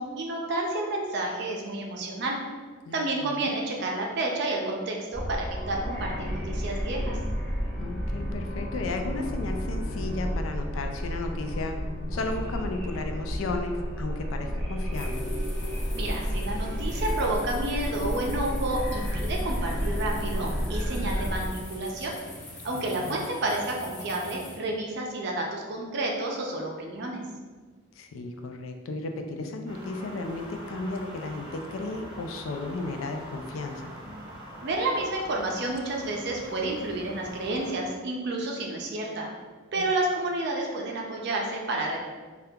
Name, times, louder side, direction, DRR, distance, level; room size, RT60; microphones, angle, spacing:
voice 1, 0.0-2.4 2.9-7.2 15.9-22.1 22.6-27.2 34.6-39.3 39.7-42.0, right 2 dB, 55° right, 0 dB, 0.5 m, -30 dB
voice 2, 2.9-3.5 7.8-11.8 12.1-15.3 22.7-23.2 28.0-33.9 39.8-39.9, left 2 dB, 85° left, 5 dB, 0.4 m, -34 dB
sound 1, 5.1-21.5, equal, 5° left, 0.5 m, -31 dB
sound 2, 14.9-24.6, left 2 dB, 65° left, 0.9 m, -44 dB
sound 3, 29.6-37.7, equal, 25° right, 0.8 m, -44 dB
2.8 x 2.3 x 3.4 m, 1.4 s
head